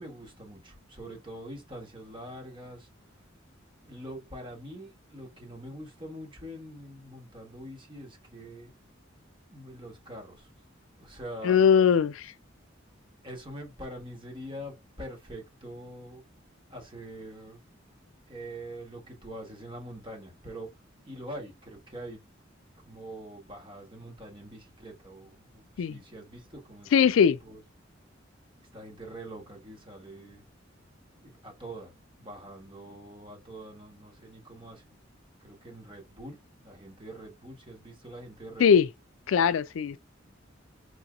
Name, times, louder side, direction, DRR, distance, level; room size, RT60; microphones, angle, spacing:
voice 1, 0.0-3.2 3.8-8.7 9.5-10.5 11.0-11.6 13.2-16.2 16.7-17.6 18.3-20.7 21.1-22.2 22.8-27.6 28.7-30.4 31.2-31.9 32.2-35.0 35.4-36.4 36.6-38.9, right 1 dB, 25° right, 1.6 m, -44 dB
voice 2, 11.4-12.3 25.8-25.9 26.9-27.4 38.6-38.9 39.3-40.0, left 7 dB, 90° left, 0.4 m, -20 dB
4.6 x 2.9 x 2.3 m
head